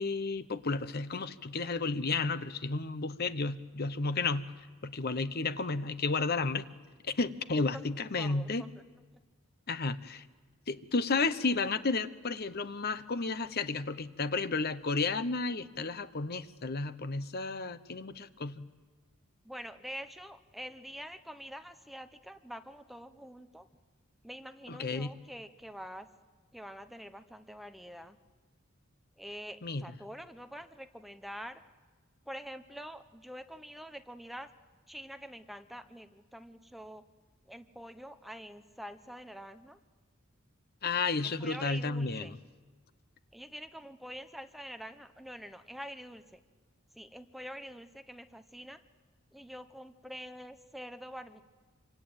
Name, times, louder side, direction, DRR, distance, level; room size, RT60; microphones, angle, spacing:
voice 1, 0.0-4.5 4.8-6.7 7.1-8.6 9.7-10.2 10.7-18.7 24.7-25.1 29.6-29.8 40.8-42.4, left 3 dB, 50° left, 13 dB, 0.9 m, -32 dB
voice 2, 8.2-8.7 9.1-9.2 19.4-23.7 24.2-26.1 26.5-28.2 29.2-31.6 32.3-34.5 34.9-37.0 37.5-39.8 41.2-42.4 43.3-46.4 46.9-48.8 49.3-51.4, equal, ahead, 8 dB, 0.9 m, -46 dB
26.5 x 25.0 x 8.9 m, 1.4 s
head